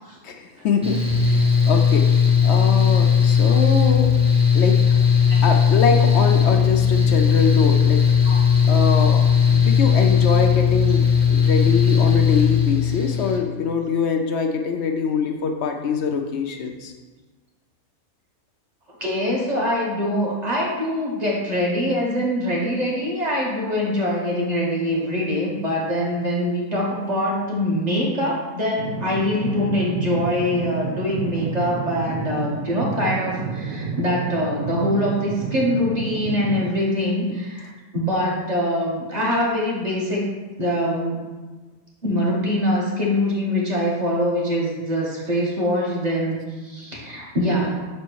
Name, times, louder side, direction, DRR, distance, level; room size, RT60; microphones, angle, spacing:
voice 1, 0.2-1.0 1.3-2.1 2.4-4.1 4.5-4.8 5.4-8.0 8.7-9.2 9.5-16.9, left 5 dB, 65° left, 4 dB, 0.7 m, -23 dB
Mechanical fan, 0.8-13.4, left 7 dB, 5° right, 0.7 m, -17 dB
voice 2, 19.0-37.6 37.9-40.2 40.6-41.2 42.0-46.4 46.6-47.7, left 1 dB, 30° right, -4 dB, 1.3 m, -23 dB
sound 1, 28.8-36.7, right 5 dB, 70° right, 1.2 m, -30 dB
6.0 x 4.3 x 4.6 m, 1.3 s
omnidirectional pair, 1.5 m